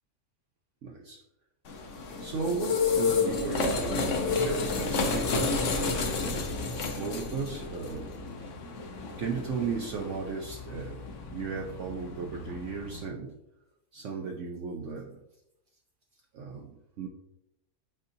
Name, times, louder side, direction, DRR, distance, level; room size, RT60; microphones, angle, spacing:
voice 1, 0.8-1.2 2.2-6.5 7.0-8.2 9.2-11.0 11.3-13.3 13.9-15.2 16.3-17.1, right 5 dB, 60° right, 0 dB, 1.0 m, -36 dB
sound 1, 1.7-13.1, left 4 dB, 65° left, 1.1 m, -31 dB
9.6 x 4.1 x 2.7 m, 0.84 s
omnidirectional pair, 1.5 m